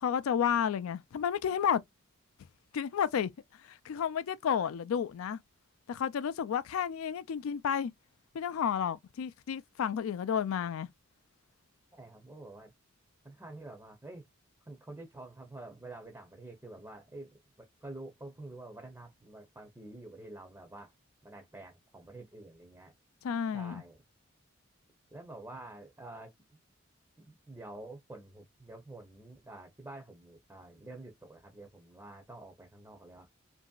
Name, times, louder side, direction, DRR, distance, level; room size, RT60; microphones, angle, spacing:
voice 1, 0.0-1.8 2.7-3.3 3.7-5.4 5.9-7.9 8.3-10.9 23.2-23.8, left 8 dB, 90° left, 0.3 m, -31 dB
voice 2, 11.9-12.7 13.2-14.2 14.7-20.9 21.2-22.9 23.5-24.0 25.1-26.3 27.2-33.3, right 2 dB, 10° right, 0.5 m, -48 dB
2.9 x 2.6 x 2.2 m
head